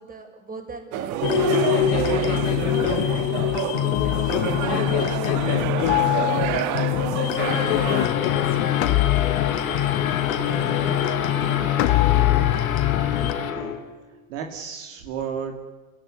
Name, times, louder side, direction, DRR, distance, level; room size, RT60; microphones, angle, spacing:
voice 1, 0.0-1.4 2.2-2.5 3.2-4.8 5.2-7.1 8.2-9.4 10.3-11.4, right 3 dB, 20° right, 4 dB, 6.3 m, -43 dB
sound 1, 0.9-8.1, right 13 dB, 45° right, 1.5 m, -28 dB
sound 2, 1.2-13.3, left 14 dB, 55° left, 1.6 m, -23 dB
voice 2, 3.0-3.4 10.5-11.0 13.2-13.7 14.3-15.6, right 7 dB, 60° right, 3 dB, 3.3 m, -34 dB
sound 3, 7.4-14.0, left 8 dB, 80° left, 3.9 m, -28 dB
29.5 x 17.0 x 9.7 m, 1.3 s
hypercardioid pair, 100°, 41 cm